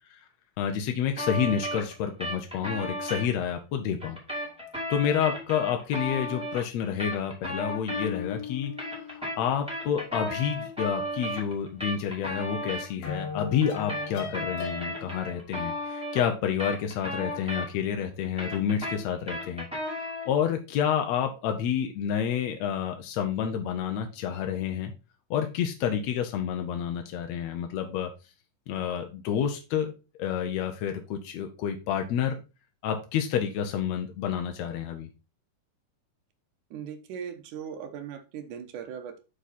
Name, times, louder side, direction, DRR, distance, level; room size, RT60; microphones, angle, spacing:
voice 1, 0.6-4.2 4.9-8.7 9.1-19.6 20.2-24.9 25.3-28.1 28.7-29.9 30.2-32.4 32.8-35.1, left 8 dB, 70° left, 4 dB, 1.7 m, -29 dB
sound 1, 1.2-3.3 4.0-8.3 8.6-12.9 13.6-17.9 18.2-20.4, equal, ahead, 2.4 m, -35 dB
sound 2, 7.9-9.9 12.3-12.4 12.7-15.2, left 6 dB, 55° left, 2.1 m, -38 dB
voice 2, 36.7-39.2, right 8 dB, 75° right, 8 dB, 2.4 m, -39 dB
7.8 x 5.0 x 4.2 m, 0.30 s
omnidirectional pair, 3.7 m